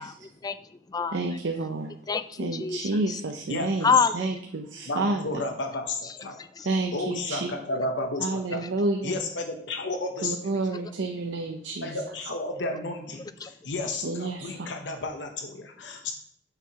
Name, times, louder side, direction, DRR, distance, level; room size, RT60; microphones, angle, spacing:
voice 1, 0.0-1.2 2.1-3.2 3.8-4.3 6.0-6.7 8.6-8.7 13.4-13.5, left 5 dB, 20° left, 13 dB, 0.3 m, -28 dB
voice 2, 1.1-1.9 2.4-5.4 6.6-7.5 8.2-9.2 10.2-12.0 14.0-14.7, right 2 dB, 80° right, 4 dB, 0.6 m, -30 dB
voice 3, 4.9-6.4 6.9-8.7 9.0-10.6 11.8-16.1, left 2 dB, 75° left, 4 dB, 0.9 m, -32 dB
6.8 x 4.6 x 5.5 m, 0.66 s
head